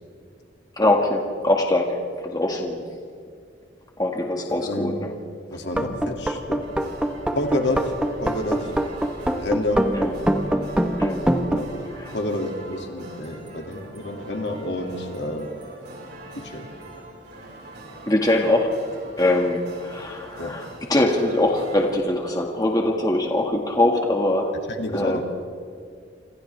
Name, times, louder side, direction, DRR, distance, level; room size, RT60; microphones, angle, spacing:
voice 1, 0.8-2.8 4.0-5.1 9.9-10.1 11.0-11.2 12.0-12.1 18.0-18.7 19.2-24.5 24.9-25.2, left 1 dB, 20° left, 1 dB, 1.8 m, -22 dB
voice 2, 4.5-5.0 5.5-6.6 7.3-7.9 8.2-8.7 9.4-10.0 11.5-11.7 12.1-15.6 16.3-16.7 20.4-20.6 24.7-25.2, left 1 dB, 65° left, 2 dB, 2.4 m, -29 dB
sound 1, 5.7-11.6, equal, 5° right, 1.1 m, -24 dB
sound 2, 6.6-21.9, right 1 dB, 60° right, 5.3 m, -42 dB
28.5 x 27.0 x 3.4 m, 2.2 s
head